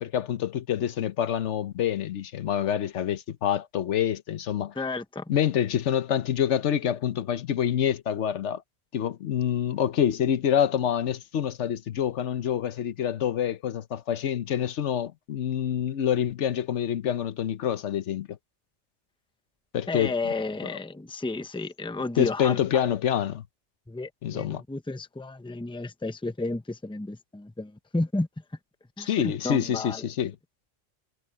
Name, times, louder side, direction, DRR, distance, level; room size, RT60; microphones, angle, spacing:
voice 1, 0.0-4.7 5.3-8.6 8.9-18.3 19.7-20.2 20.7-20.8 22.2-23.4 24.2-24.6 29.0-30.4, left 9 dB, 75° left, 1.1 m, -27 dB
voice 2, 4.8-5.2 19.9-22.6 23.9-28.3 29.0-30.0, left 2 dB, 5° left, 0.8 m, -32 dB
omnidirectional pair, 1.2 m